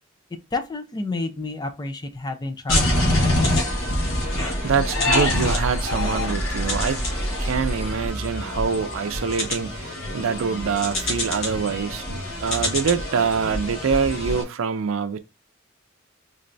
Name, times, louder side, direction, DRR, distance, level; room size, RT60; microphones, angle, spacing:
voice 1, 0.3-3.7, left 3 dB, 20° left, 0.4 m, -31 dB
sound 1, 2.7-14.4, left 1 dB, 65° left, 1.5 m, -25 dB
voice 2, 4.6-7.0 7.4-15.2, right 6 dB, 75° right, 0.4 m, -25 dB
3.9 x 3.2 x 2.6 m
head